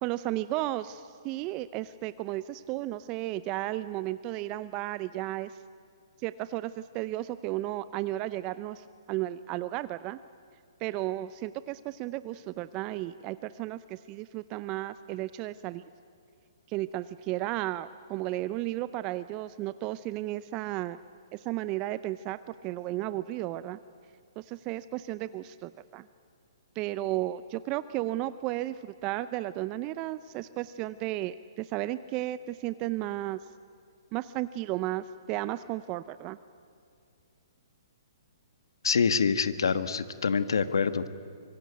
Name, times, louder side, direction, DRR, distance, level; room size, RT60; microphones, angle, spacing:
voice 1, 0.0-5.6 6.2-10.2 10.8-15.8 16.7-21.0 21.3-23.8 24.4-26.0 26.8-33.4 34.1-36.4, right 15 dB, 30° right, 15 dB, 0.6 m, -34 dB
voice 2, 38.8-41.1, left 5 dB, 75° left, 12 dB, 1.4 m, -26 dB
25.0 x 23.5 x 9.3 m, 2.4 s
hypercardioid pair, 130°, 2 cm